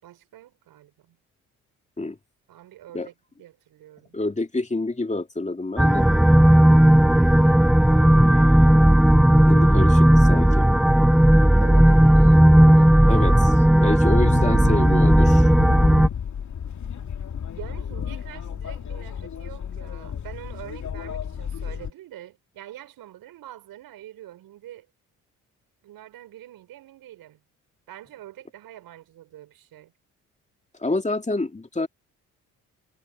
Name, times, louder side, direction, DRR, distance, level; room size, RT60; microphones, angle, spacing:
voice 1, 0.0-1.2 2.5-4.2 7.0-8.6 11.6-13.2 17.6-24.9 25.8-27.4 27.9-29.9, right 13 dB, 70° right, 5.7 m, -45 dB
voice 2, 4.1-6.1 9.5-10.7 13.1-13.3 13.8-15.5 30.8-31.9, left 2 dB, 20° left, 2.5 m, -27 dB
sound 1, 5.8-16.1, right 1 dB, ahead, 0.4 m, -15 dB
sound 2, 14.2-21.9, left 8 dB, 50° left, 2.7 m, -32 dB
hypercardioid pair, 50°, 37 cm